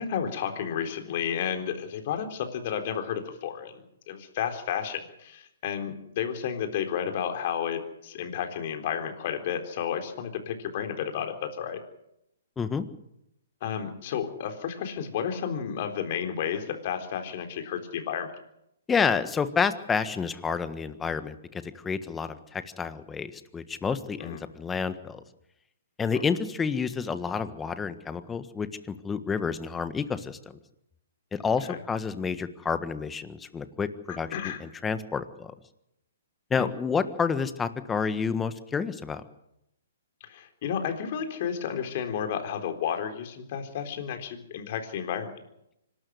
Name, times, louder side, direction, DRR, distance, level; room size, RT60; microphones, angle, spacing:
voice 1, 0.0-11.8 13.6-18.3 24.2-24.4 31.7-31.8 34.3-34.6 36.5-36.7 40.2-45.3, left 8 dB, 50° left, 6 dB, 3.9 m, -32 dB
voice 2, 18.9-25.2 26.0-30.6 31.3-35.5 36.5-39.2, left 5 dB, 10° left, 11 dB, 1.5 m, -29 dB
25.5 x 13.0 x 9.6 m, 0.83 s
hypercardioid pair, 130°, 0 cm